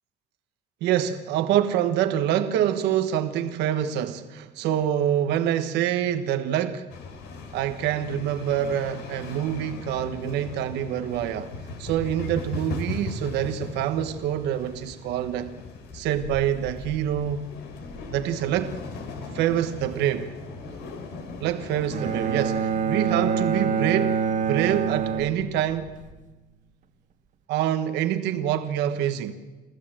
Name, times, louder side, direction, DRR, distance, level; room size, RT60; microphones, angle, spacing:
voice 1, 0.8-6.9 7.5-11.5 11.8-15.5 15.9-17.5 18.1-18.8 19.3-20.3 21.4-24.2 24.5-25.9 27.5-29.4, right 10 dB, 90° right, 1.4 m, -26 dB
sound 1, 6.9-26.1, left 3 dB, 85° left, 3.3 m, -39 dB
Bowed string instrument, 21.9-26.0, right 6 dB, 50° right, 1.6 m, -26 dB
28.5 x 14.5 x 7.7 m
cardioid pair, 110°, 17 cm